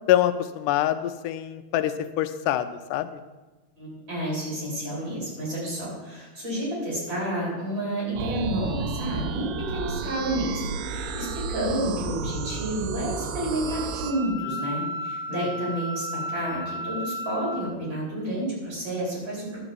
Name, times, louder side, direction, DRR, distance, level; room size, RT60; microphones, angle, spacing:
voice 1, 0.1-3.2 15.3-15.5, left 12 dB, 85° left, 10 dB, 2.1 m, -25 dB
voice 2, 3.8-19.6, right 1 dB, 35° right, -5 dB, 5.1 m, -30 dB
sound 1, 8.2-14.1, right 5 dB, 80° right, 2.3 m, -32 dB
Wind instrument woodwind instrument, 13.6-17.6, equal, 5° right, 3.6 m, -34 dB
11.5 x 4.9 x 8.0 m, 1.2 s
omnidirectional pair, 3.7 m